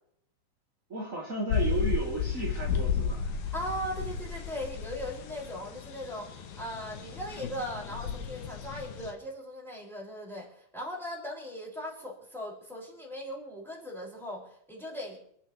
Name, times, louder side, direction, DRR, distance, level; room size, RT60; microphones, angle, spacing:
voice 1, 0.9-3.3, right 3 dB, 20° right, -5 dB, 3.3 m, -33 dB
sound 1, 1.5-9.1, left 7 dB, 75° left, 2.9 m, -33 dB
voice 2, 3.5-15.2, equal, ahead, -4 dB, 5.7 m, -39 dB
29.5 x 10.0 x 3.3 m, 0.70 s
omnidirectional pair, 4.2 m